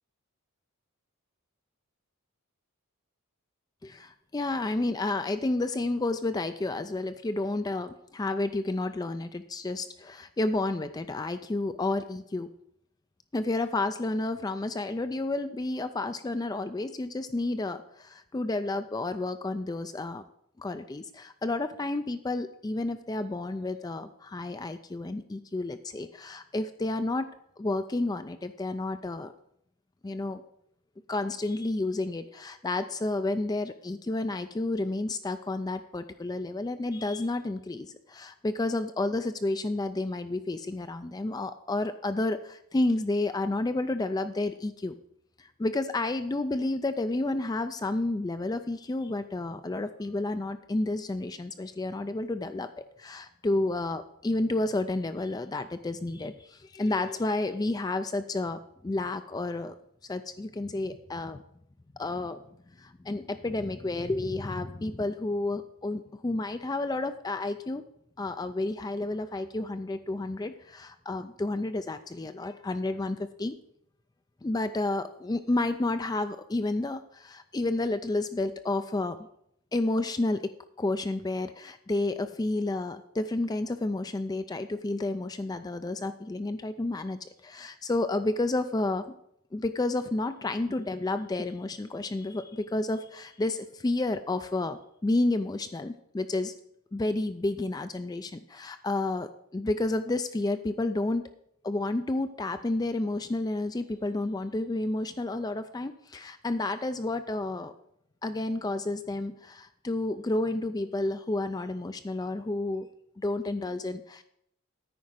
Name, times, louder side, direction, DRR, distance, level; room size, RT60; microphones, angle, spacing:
voice 1, 3.8-12.5 13.3-20.2 20.6-27.3 27.6-29.3 30.0-30.4 31.1-45.0 45.4-52.7 53.0-59.7 60.1-61.4 62.0-62.4 62.8-67.8 68.2-73.5 74.4-79.3 79.7-80.5 80.8-89.2 89.5-96.5 96.9-101.2 101.6-107.7 108.2-112.9 113.2-114.2, left 2 dB, 15° left, 10 dB, 0.3 m, -31 dB
9.5 x 4.9 x 7.6 m, 0.74 s
head